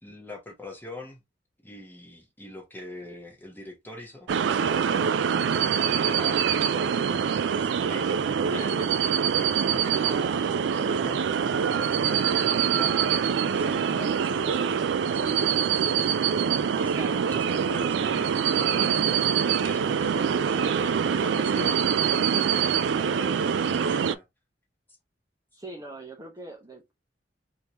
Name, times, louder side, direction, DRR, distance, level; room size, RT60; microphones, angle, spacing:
voice 1, 0.0-1.2 1.6-4.3 5.8-6.4 7.5-10.5 10.9-11.2 11.4-14.9 15.1-16.2 16.7-19.0 19.6-24.2, left 1 dB, 10° left, 1.0 m, -43 dB
sound 1, 4.3-24.2, right 7 dB, 75° right, 0.3 m, -24 dB
voice 2, 8.5-8.9 16.9-17.4 22.3-22.6 25.5-26.9, right 1 dB, 20° right, 0.8 m, -42 dB
3.5 x 2.8 x 2.9 m
head